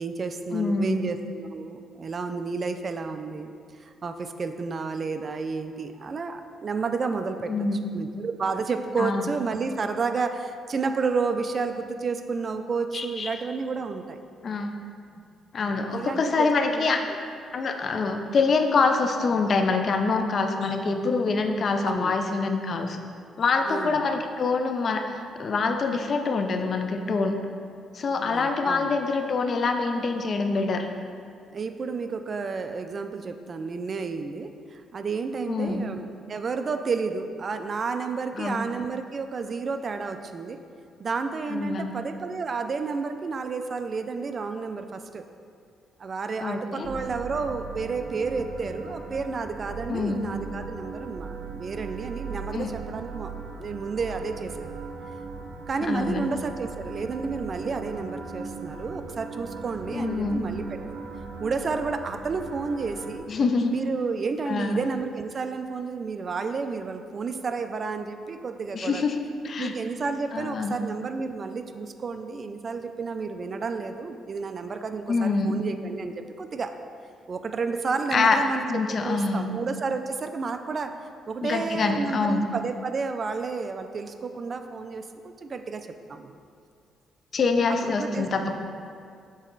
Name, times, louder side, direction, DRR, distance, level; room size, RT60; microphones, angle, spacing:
voice 1, 0.0-3.5 3.8-7.5 7.9-14.2 15.9-16.5 16.7-16.9 21.8-22.1 23.6-24.1 28.2-29.0 31.5-40.6 41.0-45.3 46.0-53.3 53.6-54.7 55.7-60.8 61.4-63.3 63.7-69.1 69.6-76.7 77.3-78.7 79.0-80.9 81.3-86.3 87.8-88.3, right 4 dB, 45° right, 8 dB, 0.3 m, -31 dB
voice 2, 0.5-1.1 7.5-8.1 9.0-9.3 12.9-13.4 14.4-14.8 15.5-17.0 17.5-23.0 23.4-27.3 27.9-30.9 35.5-35.9 38.4-38.6 41.5-41.9 46.4-46.9 49.9-50.3 52.5-52.7 55.9-56.3 59.9-60.4 63.3-63.7 64.5-64.8 68.7-69.7 70.3-70.8 75.1-75.6 78.1-78.4 78.7-79.5 81.4-82.4 87.3-88.6, left 4 dB, 50° left, 6 dB, 0.5 m, -25 dB
sound 1, 46.8-63.2, right 4 dB, 75° right, 0.7 m, -38 dB
6.2 x 4.1 x 3.9 m, 2.3 s
cardioid pair, 90°, 0 cm